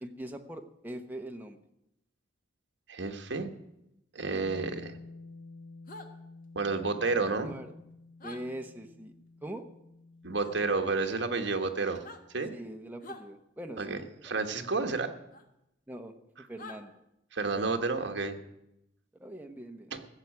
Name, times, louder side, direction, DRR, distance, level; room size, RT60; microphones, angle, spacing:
voice 1, 0.0-1.6 7.3-7.7 8.2-9.1 9.4-9.7 12.5-14.4 15.9-16.1 16.5-16.9 19.2-19.9, right 1 dB, 10° right, 4 dB, 1.0 m, -42 dB
voice 2, 2.9-3.5 4.1-4.9 6.5-7.6 10.2-12.0 12.3-12.5 13.8-14.0 14.2-15.1 17.3-18.4 19.9-20.0, right 3 dB, 65° right, 5 dB, 1.4 m, -30 dB
Bass guitar, 4.4-10.7, left 3 dB, 65° left, 1.3 m, -50 dB
sound 1, 5.9-6.1 8.2-8.4 10.4-10.6 11.9-12.2 13.0-13.2 15.3-15.4 16.6-16.8, left 2 dB, 45° left, 1.4 m, -45 dB
15.5 x 7.4 x 9.5 m, 0.85 s
head